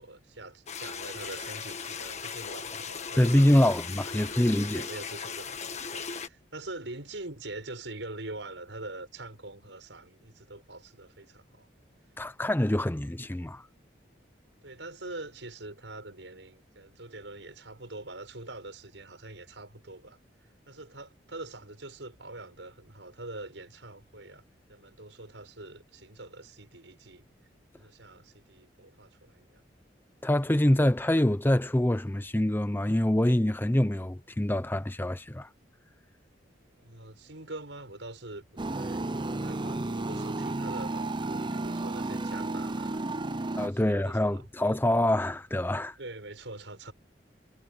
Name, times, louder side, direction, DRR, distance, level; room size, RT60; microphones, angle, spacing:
voice 1, 0.0-3.7 4.2-11.7 14.6-20.2 20.7-24.4 24.7-27.3 27.8-29.6 36.8-39.0 39.3-43.1 43.4-44.8 46.0-46.9, right 2 dB, 85° right, 6.3 m, -44 dB
sound 1, 0.7-6.3, left 6 dB, 40° left, 1.6 m, -38 dB
voice 2, 3.2-4.9 12.2-13.6 30.2-35.5 43.6-45.9, left 1 dB, 10° left, 0.6 m, -25 dB
sound 2, 38.6-43.7, right 2 dB, 25° right, 0.7 m, -32 dB
head